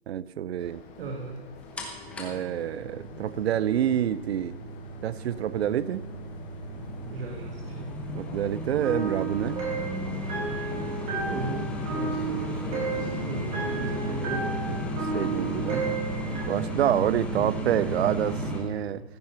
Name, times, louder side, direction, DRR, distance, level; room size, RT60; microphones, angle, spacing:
voice 1, 0.1-0.8 2.2-4.6 5.0-6.0 8.1-9.6 15.1-15.8 16.5-19.0, right 10 dB, 80° right, 19 dB, 0.6 m, -27 dB
sound 1, 0.6-16.7, left 3 dB, 20° left, 1.6 m, -48 dB
voice 2, 1.0-1.4 7.1-7.9 11.2-14.9 17.3-17.5, right 3 dB, 65° right, 2 dB, 1.7 m, -37 dB
sound 2, 1.8-18.6, right 1 dB, 5° left, 1.0 m, -34 dB
sound 3, 8.8-16.4, right 4 dB, 20° right, 3.1 m, -33 dB
14.5 x 9.1 x 5.7 m, 1.3 s
hypercardioid pair, 165°, 32 cm